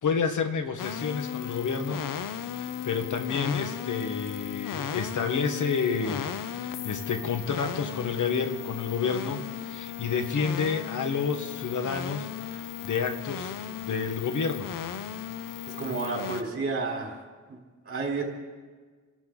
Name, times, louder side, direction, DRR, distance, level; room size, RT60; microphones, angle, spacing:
voice 1, 0.0-2.0 2.5-6.3 6.6-13.5 13.8-14.7, left 5 dB, 70° left, 7 dB, 1.5 m, -29 dB
sound 1, 0.8-16.4, left 9 dB, 85° left, 0.9 m, -36 dB
voice 2, 15.7-17.2 17.5-17.6 17.9-18.2, right 4 dB, 45° right, 0 dB, 4.1 m, -31 dB
29.5 x 12.5 x 3.9 m, 1.5 s
wide cardioid pair, 115°, 32 cm